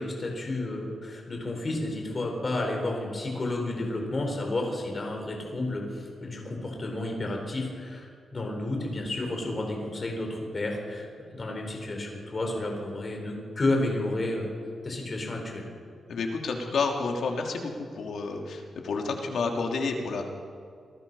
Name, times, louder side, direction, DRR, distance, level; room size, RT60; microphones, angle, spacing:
voice 1, 0.0-8.1 8.3-11.1 11.3-14.5 14.8-15.6, left 2 dB, 30° left, 1 dB, 4.4 m, -31 dB
voice 2, 16.1-20.2, left 4 dB, 70° left, 1 dB, 2.9 m, -30 dB
27.5 x 19.0 x 5.6 m, 2.2 s
wide cardioid pair, 140°, 0 cm